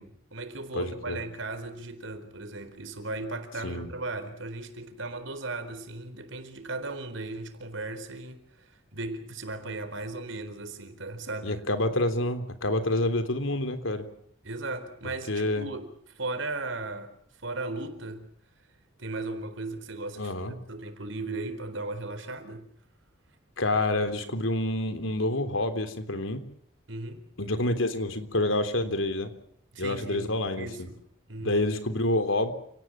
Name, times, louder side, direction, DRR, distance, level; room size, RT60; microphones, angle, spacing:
voice 1, 0.0-11.6 14.4-15.9 16.1-17.1 17.4-18.3 19.0-22.7 26.9-27.2 29.7-30.3 30.6-31.0 31.3-31.6, right 2 dB, 75° right, 4.1 m, -36 dB
voice 2, 0.7-1.2 3.6-3.9 11.4-14.1 15.3-15.7 20.2-20.5 23.6-26.4 27.4-29.3 29.8-30.9 31.4-32.5, left 1 dB, 90° left, 3.5 m, -28 dB
30.0 x 18.0 x 7.5 m
head